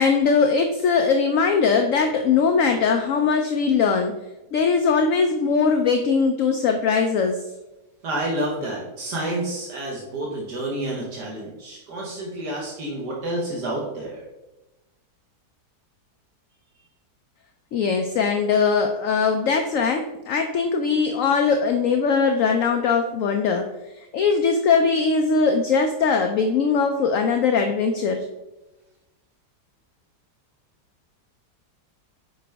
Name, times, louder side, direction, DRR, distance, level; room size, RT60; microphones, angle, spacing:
voice 1, 0.0-4.1 4.5-7.4 17.7-23.7 24.0-28.3, left 5 dB, 70° left, 6 dB, 0.8 m, -20 dB
voice 2, 8.0-14.2, right 1 dB, 80° right, -4 dB, 1.8 m, -29 dB
6.7 x 5.0 x 3.4 m, 1.0 s
omnidirectional pair, 1.8 m